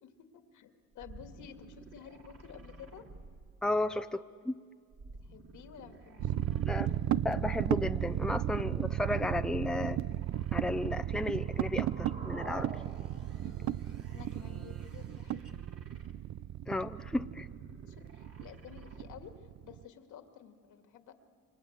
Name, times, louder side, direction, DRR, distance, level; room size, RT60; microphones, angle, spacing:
voice 1, 0.0-3.1 5.2-6.8 13.4-13.8 14.1-15.4 17.9-21.1, left 8 dB, 85° left, 6 dB, 2.2 m, -52 dB
sound 1, 0.9-4.0 4.9-7.6 8.9-11.5 12.4-16.4 16.9-19.4, right 3 dB, 50° right, 3.0 m, -53 dB
voice 2, 3.6-4.6 6.6-6.9 7.2-10.0 10.5-12.7 16.7-17.5, left 2 dB, ahead, 10 dB, 0.7 m, -34 dB
sound 2, 6.2-19.8, right 12 dB, 70° right, 0.7 m, -34 dB
sound 3, 10.8-14.8, right 3 dB, 35° right, 3.1 m, -49 dB
29.0 x 24.5 x 8.1 m, 2.2 s
cardioid pair, 90°, 30 cm